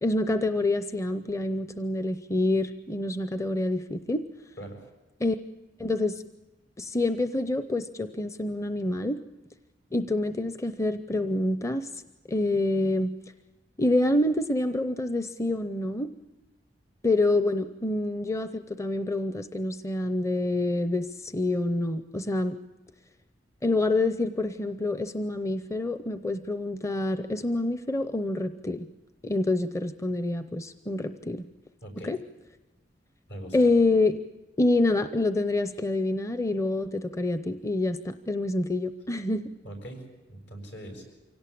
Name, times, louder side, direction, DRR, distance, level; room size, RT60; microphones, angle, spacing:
voice 1, 0.0-4.2 5.2-5.4 5.8-6.2 6.8-9.2 9.9-11.9 12.3-13.1 13.8-16.1 17.0-22.6 23.6-28.9 29.2-31.5 32.0-32.2 33.5-34.2 34.6-39.5, left 2 dB, 15° left, 11 dB, 0.7 m, -27 dB
voice 2, 31.8-32.1 33.3-33.7 39.6-41.0, right 1 dB, 70° left, 4 dB, 7.1 m, -41 dB
25.0 x 17.5 x 8.6 m, 1.1 s
head